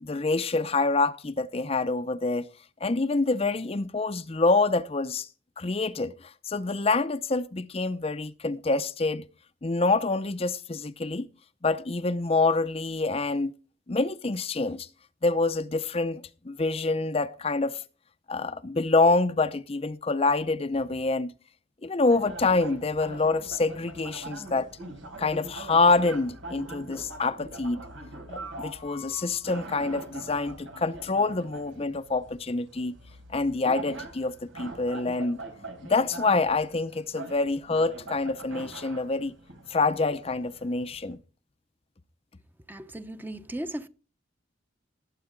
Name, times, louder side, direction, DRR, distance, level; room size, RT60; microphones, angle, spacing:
voice 1, 0.0-2.5 2.8-5.3 5.6-9.2 9.6-11.3 11.6-13.5 13.9-14.9 15.2-17.8 18.3-21.3 21.8-24.7 25.2-27.8 28.6-32.9 33.3-35.4 35.8-39.3 39.7-41.2, left 3 dB, 30° left, 0.6 m, -26 dB
sound 1, 22.1-41.1, right 2 dB, 90° right, 4.1 m, -43 dB
voice 2, 42.7-43.9, right 1 dB, 10° right, 0.8 m, -36 dB
19.5 x 9.0 x 3.8 m
head